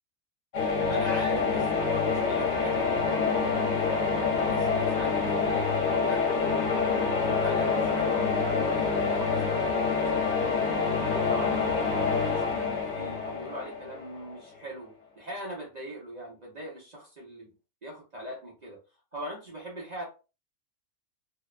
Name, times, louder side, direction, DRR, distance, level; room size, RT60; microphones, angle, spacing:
sound 1, 0.5-14.4, left 5 dB, 50° left, 1.0 m, -27 dB
voice 1, 0.8-4.0 4.3-6.6 7.1-8.3 8.6-10.4 10.8-17.5 17.8-18.8 19.1-20.0, equal, 55° right, -3 dB, 0.4 m, -40 dB
2.7 x 2.1 x 2.3 m, 0.31 s
omnidirectional pair, 1.6 m